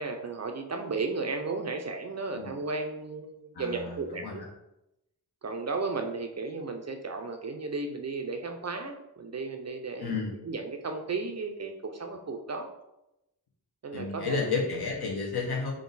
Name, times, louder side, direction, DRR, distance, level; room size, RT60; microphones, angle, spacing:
voice 1, 0.0-4.4 5.4-10.1 10.5-12.7 13.8-14.5, right 3 dB, 40° right, 5 dB, 0.4 m, -34 dB
voice 2, 3.5-4.5 10.0-10.4 13.9-15.7, left 4 dB, 65° left, -1 dB, 1.0 m, -32 dB
3.7 x 2.6 x 3.9 m, 0.87 s
wide cardioid pair, 110°, 42 cm